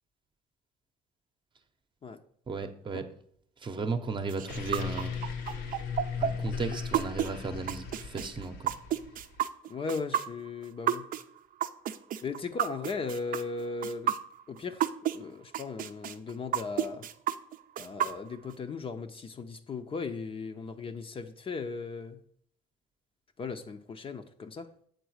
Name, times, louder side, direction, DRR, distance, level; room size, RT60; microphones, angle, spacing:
voice 1, 2.5-3.0 3.6-5.1 6.2-8.7, right 4 dB, 30° right, 7 dB, 0.8 m, -35 dB
sound 1, 4.3-15.2 15.5-18.5, right 11 dB, 55° right, 0.6 m, -31 dB
sound 2, 4.5-9.4, left 6 dB, 85° left, 1.1 m, -37 dB
voice 2, 9.7-11.1 12.2-14.1 14.5-14.8 15.1-17.1 17.8-22.2 23.4-24.7, left 4 dB, 35° left, 7 dB, 0.6 m, -37 dB
8.0 x 3.9 x 6.4 m, 0.64 s
cardioid pair, 110°, 17 cm